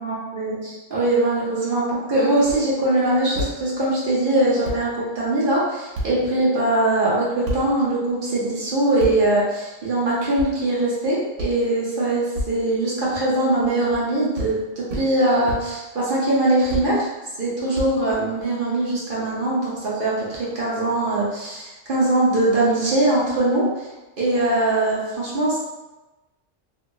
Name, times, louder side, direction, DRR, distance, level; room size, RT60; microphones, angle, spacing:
voice 1, 0.0-17.1 17.4-23.9 24.2-25.6, right 1 dB, 50° right, -7 dB, 0.9 m, -21 dB
sound 1, 2.4-2.6 3.3-3.5 4.3-4.4 4.6-4.8 5.9-6.1 7.4-7.6 9.0-9.1 10.4-10.5 11.4-11.5 12.3-12.5 13.6-14.0 14.3-14.5 14.9-15.1 15.5-15.6 16.7-16.9 17.7-18.4, right 1 dB, 75° right, 1.0 m, -28 dB
2.8 x 2.8 x 2.2 m, 1.1 s
omnidirectional pair, 1.3 m